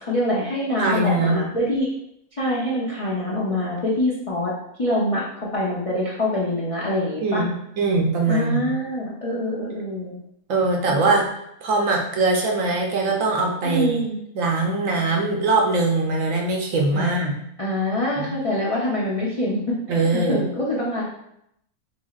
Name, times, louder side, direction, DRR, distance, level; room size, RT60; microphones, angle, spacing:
voice 1, 0.0-1.9 2.4-4.5 4.8-5.2 5.5-7.4 8.3-10.2 10.9-11.2 13.6-14.2 16.9-17.2 17.6-21.1, left 1 dB, 55° left, -7 dB, 0.3 m, -25 dB
voice 2, 0.8-1.4 7.2-8.7 10.5-11.2 11.6-14.0 14.4-17.4 18.2-18.3 19.9-20.4, right 3 dB, 65° right, 0 dB, 0.9 m, -22 dB
3.9 x 3.2 x 2.3 m, 0.76 s
omnidirectional pair, 1.6 m